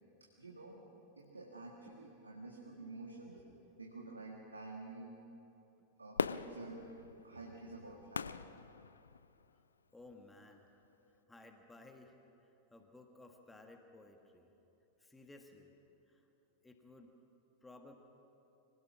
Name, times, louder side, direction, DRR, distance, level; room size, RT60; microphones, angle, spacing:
voice 1, 0.4-0.9 1.2-3.5 3.8-5.2 6.0-6.8 7.2-8.3, right 2 dB, 80° right, -1 dB, 1.9 m, -49 dB
Fireworks, 6.2-9.5 10.1-10.2, left 6 dB, 70° left, 0.4 m, -40 dB
voice 2, 9.9-12.1 12.4-14.5 15.0-15.7 16.1-16.3 16.6-17.1 17.6-17.9, left 2 dB, 10° left, 4 dB, 1.7 m, -58 dB
24.5 x 17.5 x 6.1 m, 3.0 s
figure-of-eight pair, 90°, 0 cm